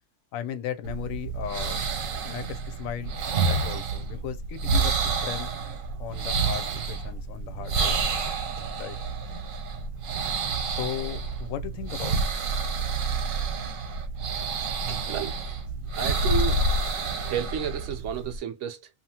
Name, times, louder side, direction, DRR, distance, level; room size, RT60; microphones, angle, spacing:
voice 1, 0.3-1.8 2.2-5.5 6.0-8.1 8.8-9.0 10.6-12.3, left 10 dB, 85° left, 1.0 m, -36 dB
sound 1, 0.8-18.4, right 4 dB, 85° right, 1.1 m, -29 dB
voice 2, 16.0-16.6 17.2-18.9, right 8 dB, 70° right, 0.9 m, -31 dB
2.8 x 2.3 x 2.8 m
omnidirectional pair, 1.4 m